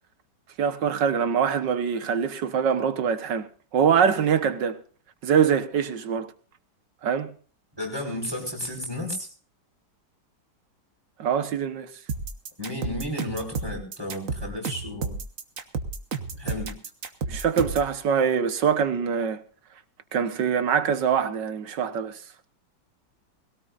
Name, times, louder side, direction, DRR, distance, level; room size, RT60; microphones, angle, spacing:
voice 1, 0.6-4.8 5.2-6.3 7.0-7.3 11.2-11.9 17.3-19.4 20.1-22.2, right 7 dB, 75° right, 1.8 m, -24 dB
voice 2, 7.8-9.3 12.6-15.2 16.3-16.7, left 1 dB, 10° right, 5.3 m, -33 dB
sound 1, 12.1-17.9, right 4 dB, 50° right, 1.6 m, -31 dB
21.5 x 17.5 x 2.6 m
omnidirectional pair, 1.9 m